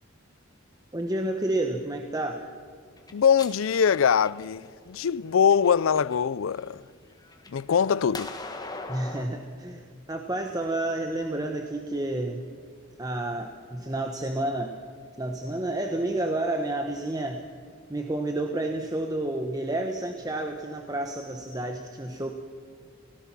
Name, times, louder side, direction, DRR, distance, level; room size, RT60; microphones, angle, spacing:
voice 1, 0.9-2.4 8.9-12.4 13.0-14.7 15.2-17.5 17.9-22.3, right 1 dB, 20° right, 1.0 m, -30 dB
sound 1, 3.0-4.7 5.3-6.2 6.6-9.3, left 3 dB, 20° left, 1.5 m, -40 dB
voice 2, 3.1-6.8 7.5-8.3, left 7 dB, 85° left, 0.4 m, -23 dB
28.5 x 17.5 x 6.0 m
head